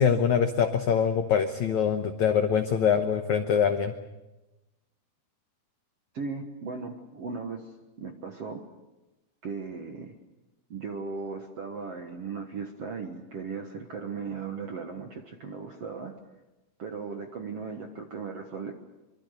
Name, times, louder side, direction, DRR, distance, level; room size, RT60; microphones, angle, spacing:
voice 1, 0.0-3.9, left 7 dB, 80° left, 7 dB, 1.7 m, -24 dB
voice 2, 6.1-7.7 8.0-8.6 9.4-10.1 10.7-16.1 16.8-18.8, right 5 dB, 60° right, 4 dB, 1.6 m, -37 dB
24.5 x 24.5 x 6.6 m, 1.0 s
omnidirectional pair, 4.8 m